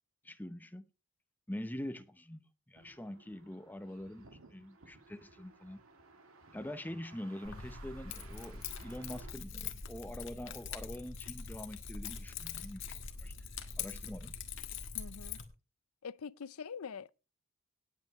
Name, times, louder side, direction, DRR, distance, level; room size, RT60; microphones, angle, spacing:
voice 1, 0.2-0.9 1.5-5.8 6.5-12.9 13.2-13.3 13.8-14.4, left 1 dB, 10° left, 0.8 m, -44 dB
sound 1, 2.7-9.3, right 3 dB, 70° right, 2.0 m, -58 dB
Keys jangling, 7.4-15.4, left 6 dB, 60° left, 1.5 m, -43 dB
voice 2, 14.9-15.4 16.0-17.1, left 6 dB, 80° left, 0.5 m, -44 dB
18.0 x 8.0 x 3.1 m
head